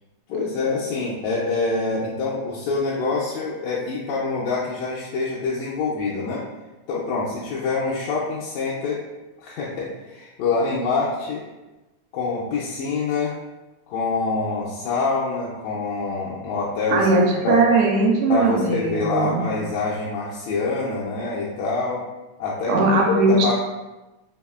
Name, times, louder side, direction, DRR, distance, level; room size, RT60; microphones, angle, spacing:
voice 1, 0.3-6.4 6.9-9.0 9.4-11.4 12.1-13.3 13.9-17.1 17.4-17.7 18.3-22.0 22.4-23.5, left 4 dB, 80° left, -5 dB, 1.7 m, -25 dB
voice 2, 16.9-19.4 22.7-23.5, right 3 dB, 80° right, 0 dB, 1.8 m, -19 dB
4.8 x 2.7 x 2.3 m, 1.1 s
omnidirectional pair, 3.4 m